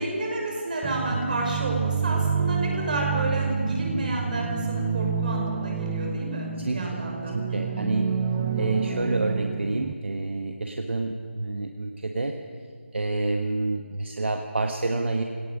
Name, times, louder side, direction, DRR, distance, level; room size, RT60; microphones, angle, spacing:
voice 1, 0.0-7.8, right 1 dB, 40° right, 0 dB, 5.7 m, -30 dB
sound 1, 0.8-9.9, right 6 dB, 10° right, 0.5 m, -28 dB
voice 2, 6.6-7.0 7.3-8.2 8.6-12.3 12.9-15.2, right 2 dB, 65° right, 4 dB, 1.5 m, -28 dB
27.0 x 18.5 x 5.3 m, 2.1 s
figure-of-eight pair, 160°, 7 cm